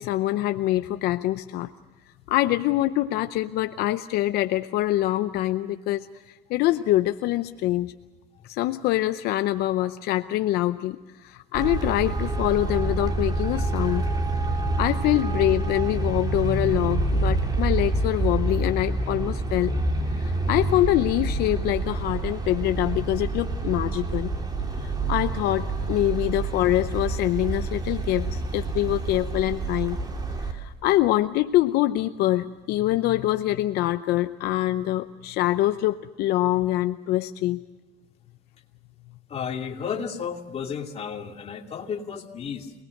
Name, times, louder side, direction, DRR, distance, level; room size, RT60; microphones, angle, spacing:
voice 1, 0.0-1.7 2.3-7.9 8.4-14.0 14.5-19.7 20.1-24.3 24.8-30.0 30.5-37.6, left 15 dB, 75° left, 10 dB, 0.7 m, -25 dB
Traffic noise roadway noise, 11.5-30.5, right 2 dB, 25° right, 3.3 m, -27 dB
voice 2, 39.3-42.7, left 7 dB, 40° left, 3 dB, 2.5 m, -33 dB
27.5 x 20.0 x 6.6 m, 1.2 s
cardioid pair, 125°, 16 cm